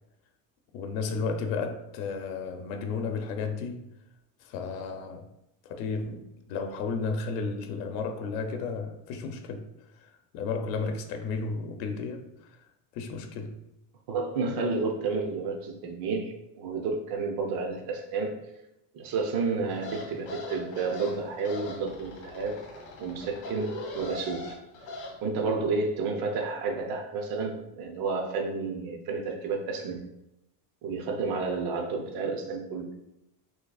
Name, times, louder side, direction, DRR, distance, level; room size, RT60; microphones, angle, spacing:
voice 1, 0.7-3.9 4.4-5.3 5.6-9.7 9.9-12.3 12.9-13.6, left 4 dB, 80° left, 5 dB, 0.8 m, -33 dB
voice 2, 14.1-18.3 18.9-22.6 23.0-24.5 25.2-30.1 30.8-32.9, right 4 dB, 50° right, 2 dB, 0.8 m, -31 dB
sound 1, 19.7-25.1, left 2 dB, 40° left, 1.6 m, -40 dB
6.5 x 3.1 x 2.3 m, 0.89 s
cardioid pair, 160°, 48 cm